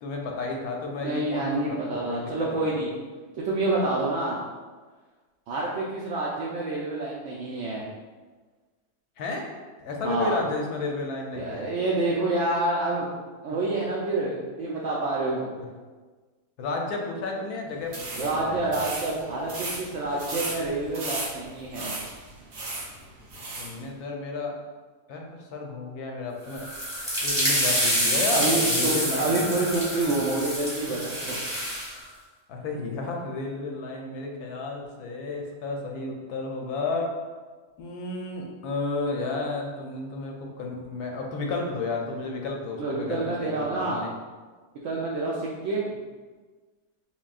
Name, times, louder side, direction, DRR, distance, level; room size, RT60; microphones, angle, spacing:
voice 1, 0.0-2.7 9.2-11.7 15.6-15.7 16.6-18.9 23.3-24.6 25.1-26.7 27.2-29.4 32.5-37.2 37.8-44.1, left 3 dB, 75° left, 0 dB, 1.1 m, -32 dB
voice 2, 1.0-2.9 3.4-4.4 5.5-7.8 10.0-10.4 11.4-13.1 13.4-15.5 18.2-22.0 28.3-31.4 42.8-44.1 44.8-46.0, right 2 dB, 80° right, -5 dB, 0.6 m, -28 dB
sound 1, 17.8-23.7, right 2 dB, 55° right, 1.3 m, -36 dB
sound 2, 26.5-31.9, equal, 5° right, 0.9 m, -27 dB
5.9 x 2.3 x 2.3 m, 1.4 s
omnidirectional pair, 1.8 m